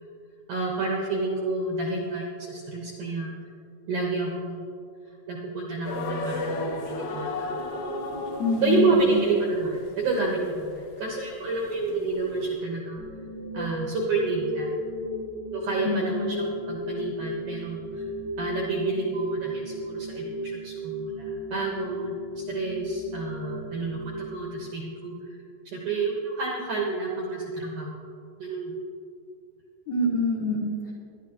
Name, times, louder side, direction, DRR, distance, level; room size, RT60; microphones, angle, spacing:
voice 1, 0.5-3.3 3.9-4.7 5.1-7.5 8.6-13.0 13.5-14.7 15.5-18.1 18.4-25.4 25.7-28.0 28.4-28.8, right 3 dB, 80° right, -2 dB, 1.8 m, -29 dB
sound 1, 5.8-12.5, left 2 dB, 70° left, 2.9 m, -35 dB
voice 2, 8.4-9.2 15.8-16.3 29.9-30.9, left 3 dB, 90° left, -2 dB, 1.6 m, -26 dB
sound 2, 13.0-25.0, equal, 55° left, 2.1 m, -35 dB
20.0 x 11.5 x 2.9 m, 2.5 s
omnidirectional pair, 5.4 m